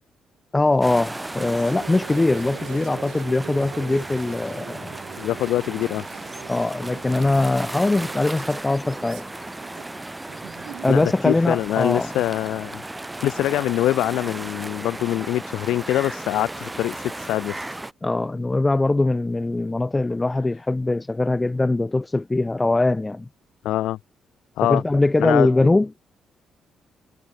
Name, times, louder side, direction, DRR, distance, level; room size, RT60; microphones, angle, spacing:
voice 1, 0.5-5.0 6.5-9.2 10.8-12.1 18.0-23.3 24.6-25.9, left 2 dB, 15° left, 1.9 m, -21 dB
sound 1, 0.7-11.2, right 13 dB, 85° right, 7.1 m, -42 dB
sound 2, 0.8-17.9, right 2 dB, 10° right, 1.5 m, -35 dB
voice 2, 5.2-6.0 10.9-12.8 13.2-17.6 23.6-24.0 24.6-24.8 25.2-25.5, left 14 dB, 85° left, 0.5 m, -24 dB
cardioid pair, 90°, 0 cm